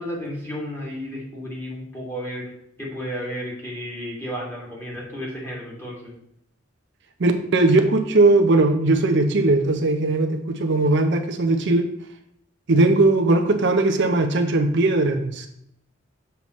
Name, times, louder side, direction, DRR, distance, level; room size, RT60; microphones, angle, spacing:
voice 1, 0.0-2.5 2.8-6.1, equal, 10° left, -5 dB, 2.1 m, -32 dB
voice 2, 7.2-11.8 12.7-15.5, right 2 dB, 65° right, 5 dB, 0.7 m, -19 dB
7.0 x 5.6 x 3.1 m, 0.74 s
head